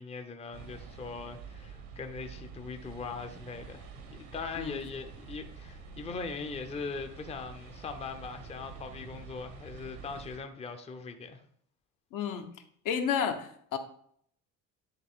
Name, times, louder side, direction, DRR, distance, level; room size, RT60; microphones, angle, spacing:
voice 1, 0.0-11.4, left 4 dB, 20° left, 6 dB, 0.6 m, -40 dB
sound 1, 0.5-10.4, right 5 dB, 80° right, 1.4 m, -47 dB
voice 2, 12.1-12.5 12.8-13.8, left 7 dB, 65° left, 6 dB, 1.0 m, -31 dB
10.0 x 3.7 x 3.7 m, 0.65 s
cardioid pair, 115°, 35 cm